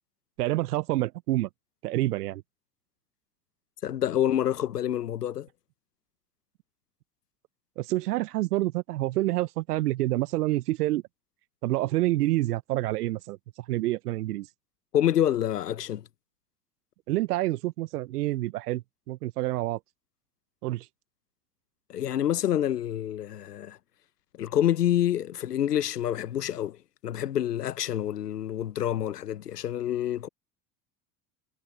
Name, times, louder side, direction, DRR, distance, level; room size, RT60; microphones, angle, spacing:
voice 1, 0.4-1.5 1.8-2.4 7.8-11.0 11.6-13.4 13.7-14.5 17.1-19.8 20.6-20.9, right 17 dB, 75° right, 0.9 m, -27 dB
voice 2, 3.8-5.5 14.9-16.1 21.9-23.8 24.4-30.3, left 11 dB, 90° left, 1.1 m, -27 dB
hypercardioid pair, 85°, 46 cm